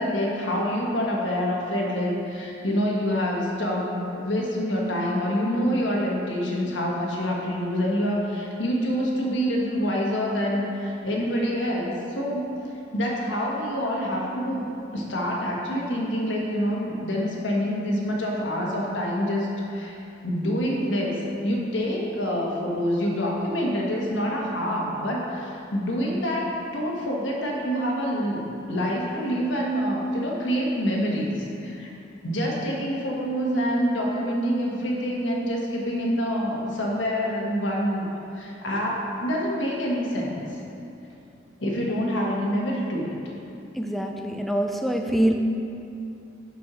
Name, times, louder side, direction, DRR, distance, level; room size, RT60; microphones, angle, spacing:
voice 1, 0.0-12.5 12.9-14.7 14.9-26.5 26.7-31.9 32.2-40.5 41.6-43.2, equal, 85° left, -3 dB, 1.4 m, -26 dB
voice 2, 43.8-45.4, equal, ahead, 3 dB, 0.3 m, -24 dB
6.0 x 5.5 x 6.2 m, 2.7 s
head